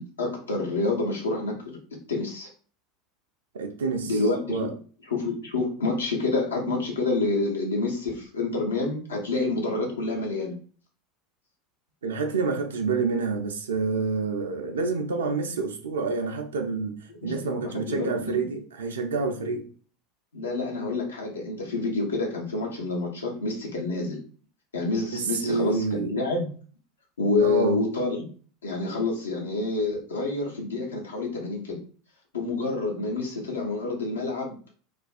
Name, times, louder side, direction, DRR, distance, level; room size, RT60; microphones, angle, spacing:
voice 1, 0.0-1.8 2.1-2.5 4.0-4.7 5.1-10.5 17.1-18.4 20.3-24.2 24.7-26.5 27.2-28.3 28.6-31.8 32.3-34.6, left 3 dB, 75° left, 0.7 m, -28 dB
voice 2, 3.5-4.1 4.5-4.7 12.0-17.0 17.2-19.7 25.1-26.1 27.4-27.8, right 4 dB, 70° right, 0.3 m, -28 dB
2.4 x 2.2 x 2.3 m
figure-of-eight pair, 75°, 0 cm